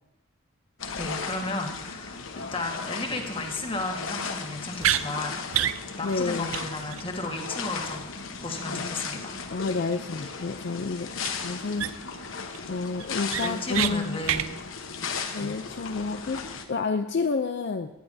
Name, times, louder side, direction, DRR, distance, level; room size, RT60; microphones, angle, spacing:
sound 1, 0.8-16.6, left 5 dB, 85° left, 1.0 m, -36 dB
voice 1, 1.0-9.4 13.4-14.6 15.4-15.5, left 2 dB, 25° left, 2 dB, 1.5 m, -34 dB
sound 2, 4.8-5.0 5.5-5.8 6.1-6.2 6.5-6.6 6.9-7.0 11.2-11.3 11.8-12.2 12.5-12.6 13.0-13.9 14.2-14.5, right 11 dB, 85° right, 0.4 m, -26 dB
voice 2, 6.0-6.5 8.7-8.9 9.5-11.1 11.4-11.9 12.7-14.2 15.3-17.9, left 4 dB, 55° left, 7 dB, 0.5 m, -30 dB
18.0 x 10.0 x 2.7 m, 0.92 s
head